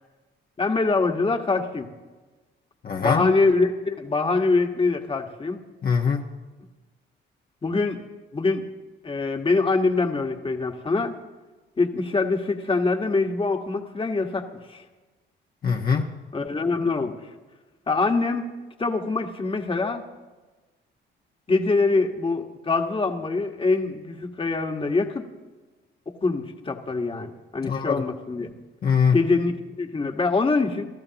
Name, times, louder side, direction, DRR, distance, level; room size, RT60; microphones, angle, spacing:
voice 1, 0.6-1.9 3.0-5.6 7.6-8.0 8.3-8.7 9.0-11.2 11.8-14.8 16.3-17.2 17.9-18.5 18.8-20.0 21.5-25.3 26.1-28.5 29.1-30.8, left 3 dB, 25° left, 4 dB, 1.6 m, -24 dB
voice 2, 2.8-3.3 5.8-6.2 15.6-16.1 27.6-28.0 28.8-29.2, left 6 dB, 50° left, 0 dB, 1.3 m, -22 dB
29.5 x 14.0 x 3.0 m, 1.2 s
cardioid pair, 90°, 20 cm